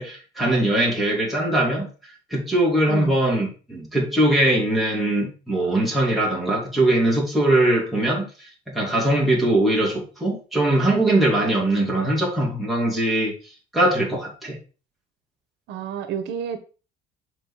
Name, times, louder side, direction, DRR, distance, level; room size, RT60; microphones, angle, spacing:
voice 1, 0.0-1.9 2.3-13.3 13.7-14.6, right 1 dB, ahead, 3.3 m, -21 dB
voice 2, 15.7-16.6, right 7 dB, 65° right, 1.4 m, -29 dB
7.5 x 5.5 x 6.5 m
cardioid pair, 170°, 19 cm